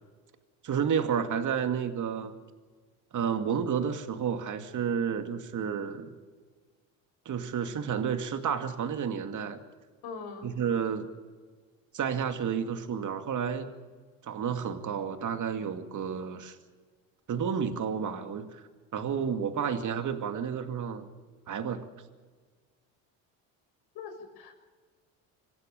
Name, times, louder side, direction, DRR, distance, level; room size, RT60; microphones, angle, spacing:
voice 1, 0.6-2.3 3.1-6.1 7.3-9.6 10.4-11.1 11.9-13.7 14.3-16.6 17.3-18.6 18.9-21.1 21.5-21.8, right 7 dB, 45° right, 7 dB, 2.5 m, -31 dB
voice 2, 10.0-10.5 23.9-24.7, left 5 dB, 70° left, 5 dB, 6.4 m, -42 dB
26.5 x 15.0 x 7.1 m, 1.4 s
supercardioid pair, 85°, 41 cm